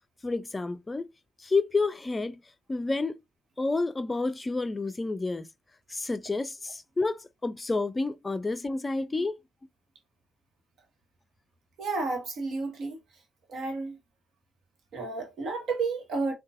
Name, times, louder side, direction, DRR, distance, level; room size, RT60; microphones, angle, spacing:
voice 1, 0.2-1.1 1.4-2.4 2.7-3.2 3.6-5.5 5.9-9.4, left 3 dB, 25° left, 0.4 m, -29 dB
voice 2, 11.8-13.0 13.5-14.0 14.9-16.3, right 3 dB, 65° right, 1.2 m, -31 dB
3.8 x 2.3 x 2.4 m
hypercardioid pair, 45°, 0 cm